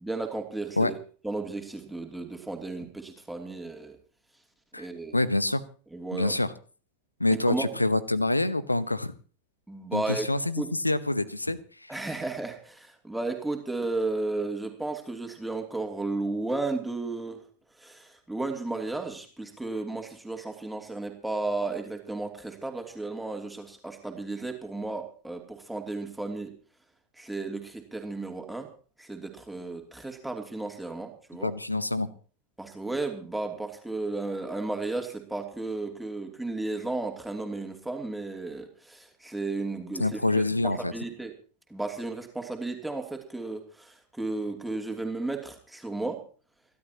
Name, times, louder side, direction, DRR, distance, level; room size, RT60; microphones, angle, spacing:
voice 1, 0.0-0.9 1.2-4.0 4.8-5.2 5.9-6.3 7.3-7.7 9.7-10.3 10.6-10.7 11.9-17.4 17.8-26.5 27.2-28.7 29.0-31.5 32.6-41.3 41.7-46.2, right 2 dB, 5° right, 3 dB, 2.9 m, -34 dB
voice 2, 5.1-5.6 6.1-6.5 7.2-9.1 9.9-11.9 31.4-32.1 40.0-40.9, left 2 dB, 85° left, 18 dB, 0.9 m, -26 dB
28.5 x 12.0 x 2.9 m, 0.40 s
figure-of-eight pair, 90°, 0 cm